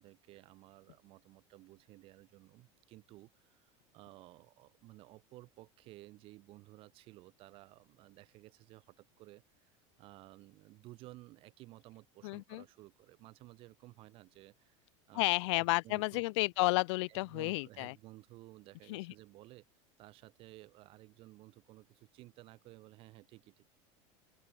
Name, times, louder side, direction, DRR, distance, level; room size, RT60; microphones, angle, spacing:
voice 1, 0.0-16.2 17.1-19.7 20.0-23.6, right 18 dB, 35° right, 0.6 m, -56 dB
voice 2, 12.2-12.6 15.1-17.9 18.9-19.1, left 24 dB, 65° left, 0.4 m, -32 dB
open air
supercardioid pair, 165°, 16 cm